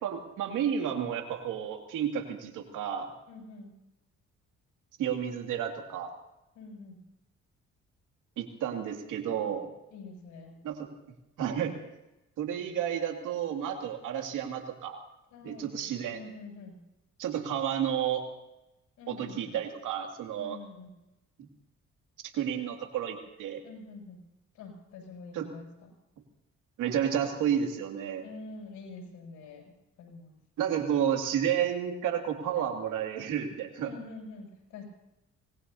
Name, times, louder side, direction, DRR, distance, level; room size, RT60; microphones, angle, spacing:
voice 1, 0.0-3.1 5.0-6.1 8.4-9.7 10.6-10.9 11.4-11.8 12.4-15.0 15.4-16.2 17.2-18.3 19.1-20.6 21.4-21.5 22.3-23.6 25.3-25.5 26.8-28.2 30.6-33.9, right 9 dB, 90° right, 3 dB, 2.5 m, -31 dB
voice 2, 3.3-3.8 6.5-7.0 9.3-9.5 9.9-10.6 15.3-15.7 16.1-16.8 19.0-19.5 20.3-21.0 23.6-24.2 24.5-25.9 28.2-30.4 33.8-34.8, left 3 dB, 90° left, 0 dB, 7.6 m, -46 dB
25.0 x 19.5 x 2.8 m, 0.94 s
cardioid pair, 90°, 30 cm